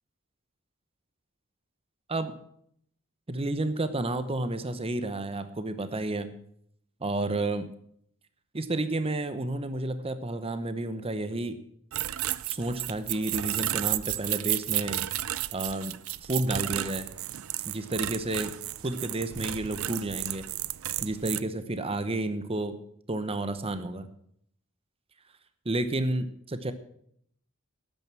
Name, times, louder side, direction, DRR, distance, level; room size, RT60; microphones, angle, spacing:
voice 1, 3.3-6.4 7.0-7.7 8.5-11.6 12.5-15.0 15.5-15.9 16.2-17.1 17.6-18.5 18.8-20.4 21.0-22.8 23.1-24.1 25.6-26.7, right 2 dB, 30° right, 11 dB, 0.9 m, -31 dB
sound 1, 11.9-21.4, right 14 dB, 85° right, 0.5 m, -32 dB
12.0 x 9.1 x 7.5 m, 0.69 s
head